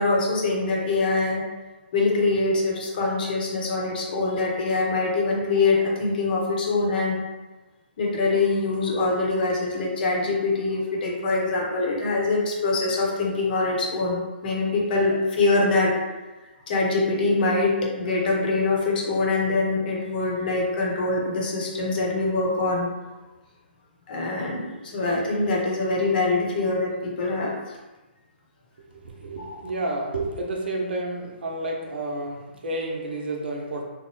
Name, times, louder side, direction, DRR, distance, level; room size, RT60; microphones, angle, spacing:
voice 1, 0.0-1.4 1.9-7.2 8.0-15.9 16.7-22.9 24.1-27.8 29.4-29.6, left 3 dB, 55° left, -2 dB, 0.9 m, -24 dB
voice 2, 28.9-33.8, right 2 dB, 70° right, 0 dB, 0.7 m, -30 dB
3.1 x 2.1 x 3.1 m, 1.1 s
hypercardioid pair, 140°, 6 cm